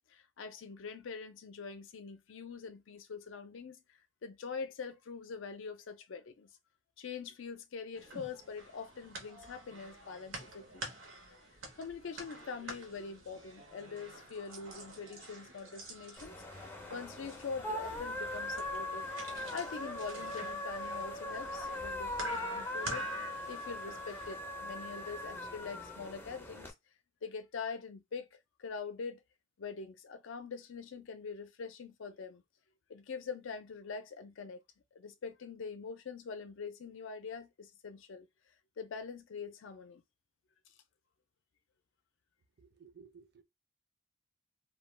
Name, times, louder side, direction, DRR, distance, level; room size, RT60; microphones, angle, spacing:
voice 1, 0.1-6.5 7.0-10.9 11.8-16.4 16.9-19.1 19.5-23.1 23.5-26.7 27.2-29.2 29.6-32.4 32.9-34.6 34.9-38.3 38.8-40.0, left 5 dB, 75° left, 0.4 m, -44 dB
sound 1, 8.0-24.3, right 1 dB, 80° right, 0.8 m, -47 dB
sound 2, 16.2-26.7, left 1 dB, 10° left, 0.4 m, -40 dB
voice 2, 42.6-43.4, right 6 dB, 50° right, 0.4 m, -57 dB
2.2 x 2.2 x 3.1 m
head